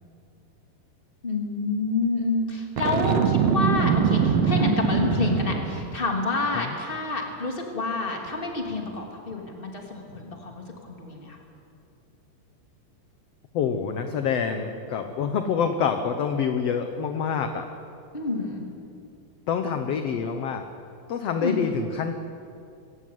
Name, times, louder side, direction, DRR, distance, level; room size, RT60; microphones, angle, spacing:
voice 1, 1.2-11.4 18.1-18.7 21.4-21.7, left 3 dB, 15° left, 1 dB, 2.7 m, -28 dB
Boom, 2.8-6.0, right 7 dB, 90° right, 2.9 m, -23 dB
voice 2, 13.5-17.7 19.5-20.6 21.1-22.1, left 6 dB, 65° left, 6 dB, 1.6 m, -26 dB
24.0 x 15.0 x 9.4 m, 2.6 s
omnidirectional pair, 4.0 m